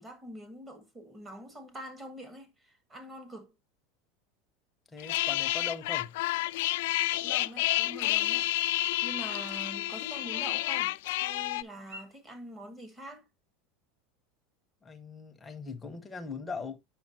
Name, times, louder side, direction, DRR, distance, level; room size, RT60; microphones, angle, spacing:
voice 1, 0.0-3.5 7.1-8.5 9.0-13.3, right 1 dB, 15° right, 1.5 m, -45 dB
voice 2, 4.9-6.2 14.8-16.8, left 4 dB, 10° left, 0.9 m, -40 dB
sound 1, 4.9-13.2, equal, 75° right, 5.6 m, -59 dB
sound 2, 5.0-11.6, left 18 dB, 75° left, 0.3 m, -30 dB
8.5 x 5.7 x 2.7 m
supercardioid pair, 155°, 0 cm